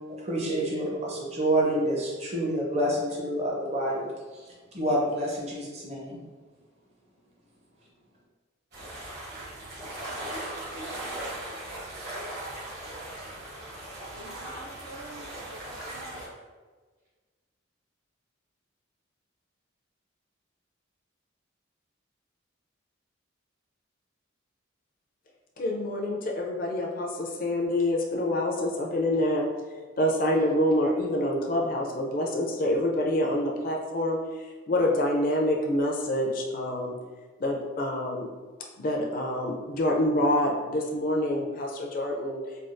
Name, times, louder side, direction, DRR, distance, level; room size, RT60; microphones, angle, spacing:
voice 1, 0.1-6.2, right 1 dB, 30° right, -3 dB, 0.6 m, -28 dB
sound 1, 8.7-16.3, right 1 dB, 50° right, 1.0 m, -38 dB
voice 2, 14.1-16.2, right 1 dB, 75° right, -6 dB, 0.6 m, -46 dB
voice 3, 25.6-29.5 30.0-36.9 37.4-38.3 38.8-42.4, left 1 dB, 45° left, -1 dB, 0.4 m, -27 dB
3.4 x 2.3 x 2.5 m, 1.4 s
head